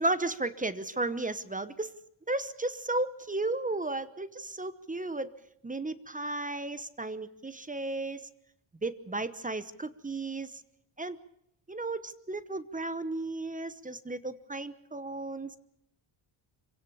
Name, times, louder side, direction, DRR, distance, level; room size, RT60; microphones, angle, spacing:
voice 1, 0.0-1.9 2.3-5.3 5.6-8.3 8.8-10.6 11.0-11.2 11.7-15.6, right 2 dB, 15° right, 14 dB, 1.0 m, -34 dB
25.5 x 17.0 x 7.2 m, 0.74 s
cardioid pair, 95°, 49 cm